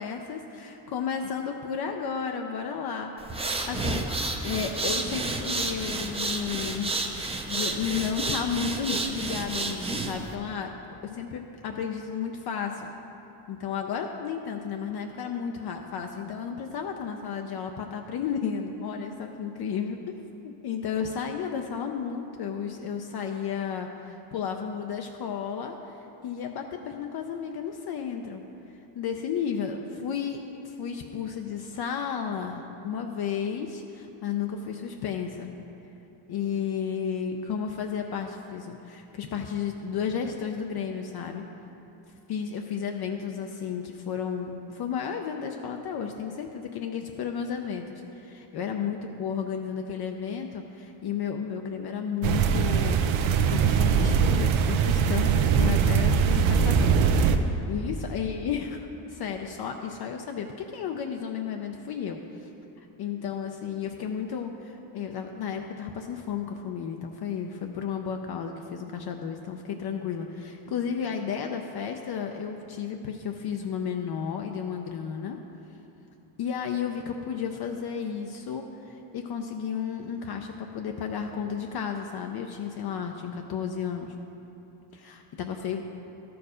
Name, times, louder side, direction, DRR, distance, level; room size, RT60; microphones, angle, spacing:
voice 1, 0.0-4.1 4.4-6.9 7.5-10.7 11.0-12.9 13.5-20.1 20.4-28.4 29.0-35.5 36.3-41.5 42.3-57.0 57.6-62.5 62.8-75.4 76.4-84.1 84.9-85.8, left 7 dB, 55° left, 4 dB, 0.6 m, -33 dB
Respi Alter, 3.2-10.3, right 2 dB, 15° right, 0.5 m, -31 dB
sound 1, 52.2-57.4, right 6 dB, 80° right, 0.7 m, -22 dB
12.5 x 4.7 x 4.9 m, 3.0 s
cardioid pair, 130°, 47 cm